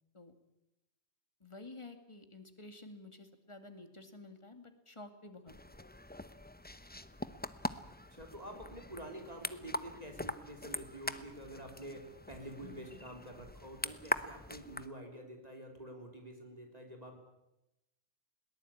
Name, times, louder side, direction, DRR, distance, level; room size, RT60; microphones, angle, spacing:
voice 1, 1.4-5.5 12.6-13.0, left 2 dB, 25° left, 7 dB, 2.4 m, -51 dB
sound 1, 5.5-14.9, left 1 dB, 10° left, 0.7 m, -42 dB
voice 2, 8.1-17.2, right 1 dB, 35° right, 3 dB, 3.5 m, -48 dB
21.5 x 19.0 x 8.8 m, 0.91 s
omnidirectional pair, 1.2 m